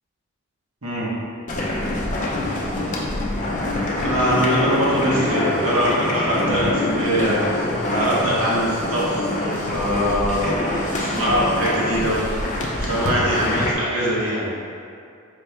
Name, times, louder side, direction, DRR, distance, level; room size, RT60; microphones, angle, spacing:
sound 1, 1.5-13.7, left 1 dB, 35° left, 0.5 m, -25 dB
voice 1, 4.0-7.4 7.9-12.2 12.8-14.5, equal, 85° right, -8 dB, 1.2 m, -22 dB
4.1 x 2.8 x 3.3 m, 2.4 s
head